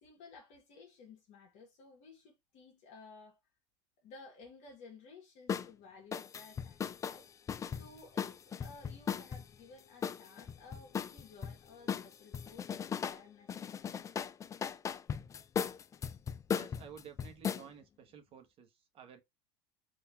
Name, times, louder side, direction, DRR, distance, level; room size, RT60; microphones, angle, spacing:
voice 1, 0.0-3.4 4.0-7.3 7.8-14.1, left 4 dB, 55° left, 1.3 m, -55 dB
sound 1, 5.5-5.7 6.1-9.4 10.0-11.5 11.9-13.2 13.5-17.6, left 7 dB, 25° left, 0.3 m, -37 dB
voice 2, 16.5-19.2, right 8 dB, 45° right, 1.1 m, -53 dB
3.7 x 2.8 x 4.3 m
supercardioid pair, 105°, 14 cm